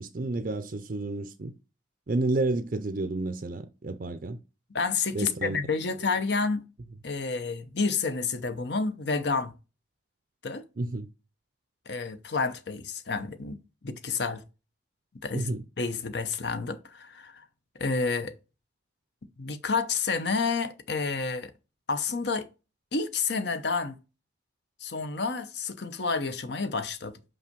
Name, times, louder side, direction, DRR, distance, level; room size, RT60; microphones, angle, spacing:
voice 1, 0.0-1.5 2.1-4.4 5.1-5.6 10.8-11.1 15.3-15.6, right 2 dB, 45° right, 0.5 m, -30 dB
voice 2, 4.7-6.7 7.0-9.5 10.4-10.6 11.9-13.6 13.8-14.4 15.2-15.5 15.8-17.4 17.7-18.3 19.4-21.5 21.9-22.5 22.9-24.0 24.8-27.2, left 4 dB, 60° left, 0.8 m, -29 dB
5.6 x 5.4 x 5.2 m
head